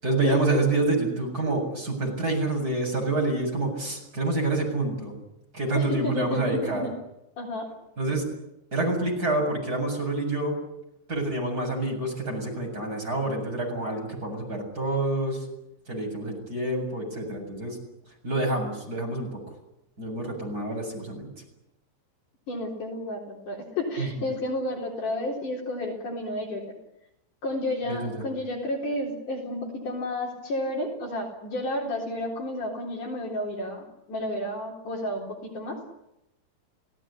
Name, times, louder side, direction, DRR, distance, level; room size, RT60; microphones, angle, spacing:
voice 1, 0.0-5.1 5.5-6.8 8.0-8.2 8.7-10.6 11.1-15.5 15.9-17.8 18.2-19.4 20.0-21.3 24.0-24.1 27.9-28.2, right 2 dB, 20° right, 1 dB, 7.7 m, -27 dB
voice 2, 5.7-6.9 7.4-7.7 22.5-26.6 27.4-35.8, left 1 dB, 50° left, 0 dB, 5.1 m, -31 dB
28.5 x 17.5 x 10.0 m, 0.86 s
omnidirectional pair, 4.8 m